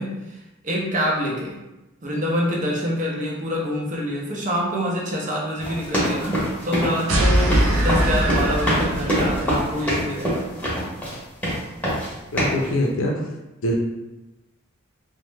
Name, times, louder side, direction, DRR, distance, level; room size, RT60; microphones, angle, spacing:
voice 1, 0.0-1.6 2.0-10.5, equal, 35° right, -2 dB, 0.6 m, -26 dB
sound 1, 5.6-11.2 11.4-12.1 12.4-12.7, equal, 5° left, 0.9 m, -24 dB
sound 2, 7.1-9.7, right 1 dB, 80° right, 0.5 m, -21 dB
voice 2, 12.3-13.2 13.6-13.7, left 1 dB, 65° left, 0 dB, 0.5 m, -23 dB
3.0 x 2.1 x 3.3 m, 1.0 s
head